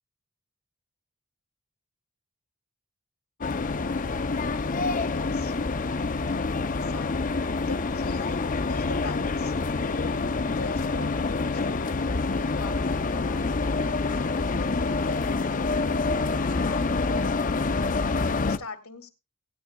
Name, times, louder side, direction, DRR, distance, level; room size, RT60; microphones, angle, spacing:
sound 1, 3.4-18.6, left 3 dB, 35° left, 0.6 m, -27 dB
voice 1, 5.1-5.5 6.3-9.5 9.8-14.6 14.9-19.1, left 3 dB, 70° left, 4 dB, 2.2 m, -43 dB
18.5 x 9.5 x 2.3 m, 0.25 s
head